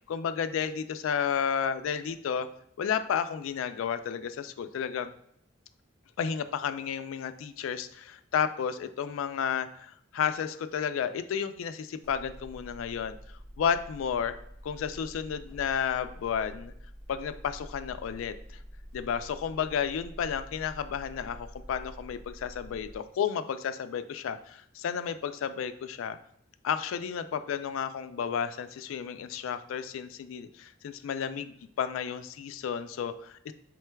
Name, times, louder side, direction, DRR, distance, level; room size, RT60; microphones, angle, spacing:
voice 1, 0.1-2.5 2.8-5.1 6.2-13.2 13.6-14.3 14.6-16.7 17.1-18.3 18.9-26.2 26.6-33.5, left 7 dB, 90° left, 11 dB, 0.3 m, -32 dB
sound 1, 12.0-23.0, equal, 5° left, 1.4 m, -47 dB
4.5 x 3.6 x 2.2 m, 0.71 s
head